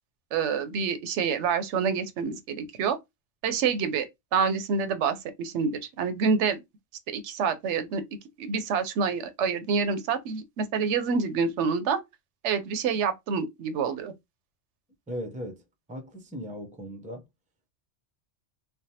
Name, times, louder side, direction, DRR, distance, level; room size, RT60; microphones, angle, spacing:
voice 1, 0.3-3.0 3.4-4.1 4.3-6.6 7.1-8.0 8.4-12.0 12.4-14.1, right 5 dB, 80° right, 0.9 m, -27 dB
voice 2, 15.1-15.6 15.9-17.2, equal, 10° right, 0.4 m, -37 dB
3.3 x 2.1 x 2.7 m
omnidirectional pair, 1.2 m